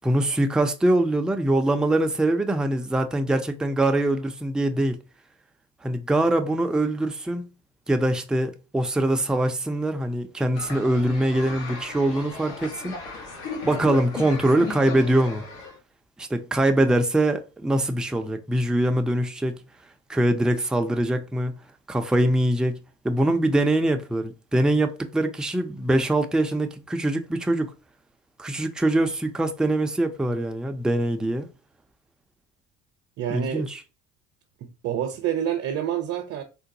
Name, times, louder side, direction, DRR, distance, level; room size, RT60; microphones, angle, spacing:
voice 1, 0.0-5.0 5.8-7.5 7.9-13.0 13.6-15.4 16.2-19.6 20.1-21.6 21.9-22.8 23.0-27.7 28.4-31.5 33.3-33.8, right 1 dB, 5° right, 0.4 m, -23 dB
sound 1, 10.5-15.8, left 4 dB, 85° left, 1.2 m, -36 dB
voice 2, 33.2-33.7 34.6-36.4, right 10 dB, 50° right, 0.6 m, -28 dB
3.8 x 2.2 x 2.6 m
supercardioid pair, 90°, 30 cm